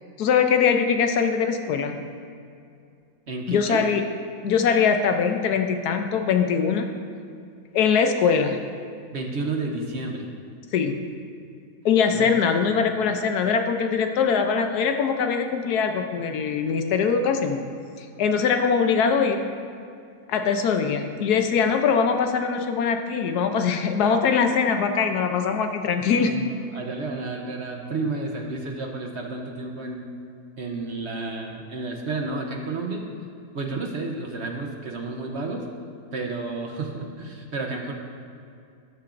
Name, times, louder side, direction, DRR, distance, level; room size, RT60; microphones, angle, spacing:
voice 1, 0.2-2.0 3.5-4.0 4.4-6.9 7.7-8.6 10.7-11.0 11.8-17.6 18.0-19.4 20.3-26.4, left 6 dB, 80° left, 6 dB, 1.2 m, -22 dB
voice 2, 3.3-3.8 9.1-10.3 12.1-12.2 12.9-13.0 26.2-30.1 30.6-33.1 33.5-35.7 36.1-37.9, right 3 dB, 50° right, 2 dB, 1.0 m, -31 dB
12.5 x 11.5 x 2.6 m, 2.4 s
omnidirectional pair, 1.7 m